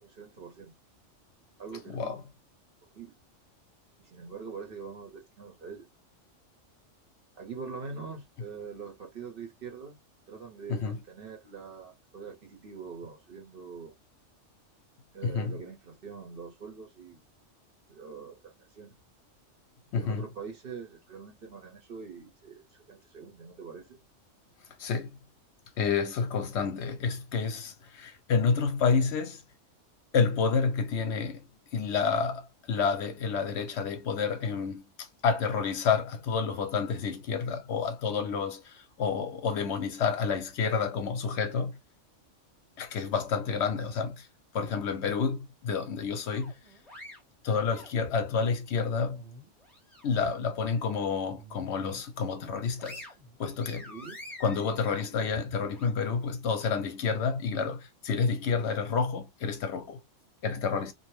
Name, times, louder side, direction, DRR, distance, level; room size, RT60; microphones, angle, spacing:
voice 1, 0.0-0.7 1.6-2.2 2.9-3.2 4.0-5.9 7.4-10.0 10.3-13.9 15.1-17.2 17.9-18.9 20.0-24.0 53.7-54.2, right 5 dB, 50° right, 0.9 m, -44 dB
voice 2, 1.9-2.2 10.7-11.0 15.2-15.6 19.9-20.2 24.8-25.2 25.8-29.4 30.1-31.4 31.7-41.8 42.8-44.3 44.5-46.5 47.4-49.2 50.0-53.0 53.4-53.9 54.4-60.0 60.4-60.9, left 5 dB, 70° left, 0.8 m, -29 dB
sound 1, 46.3-48.4 48.8-50.3 50.6-50.8 51.3-52.0 52.4-55.9, left 1 dB, ahead, 0.9 m, -48 dB
2.7 x 2.0 x 3.0 m
omnidirectional pair, 1.3 m